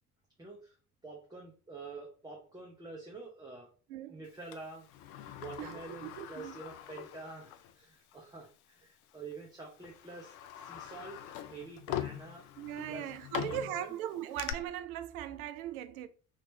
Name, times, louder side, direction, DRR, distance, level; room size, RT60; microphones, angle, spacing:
voice 1, 0.4-0.8 1.0-3.7 4.1-4.9 5.4-11.2 11.5-12.4 12.9-13.9, right 3 dB, 10° right, 0.7 m, -47 dB
voice 2, 3.9-4.2 5.6-6.6 12.6-16.1, right 11 dB, 65° right, 0.5 m, -39 dB
Sliding door, 4.5-7.7 8.1-8.2 9.1-9.3 9.8-14.5, left 11 dB, 45° left, 0.5 m, -42 dB
2.9 x 2.9 x 3.2 m
figure-of-eight pair, 60°, 47 cm